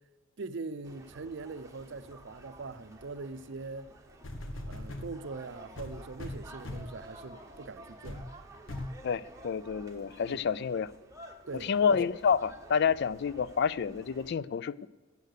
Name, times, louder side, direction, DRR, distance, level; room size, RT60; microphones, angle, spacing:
voice 1, 0.4-3.9 4.7-8.2 10.3-10.4 11.5-12.0, right 3 dB, 60° right, 0.6 m, -42 dB
sound 1, 0.8-14.3, right 1 dB, 15° right, 1.1 m, -52 dB
sound 2, 4.2-5.1 5.8-7.0 7.5-7.7 8.0-8.3 8.7-9.0 9.7-9.8, left 1 dB, 70° left, 1.3 m, -40 dB
voice 2, 9.0-10.9 11.5-14.9, left 6 dB, 55° left, 0.3 m, -29 dB
13.5 x 8.4 x 6.5 m
head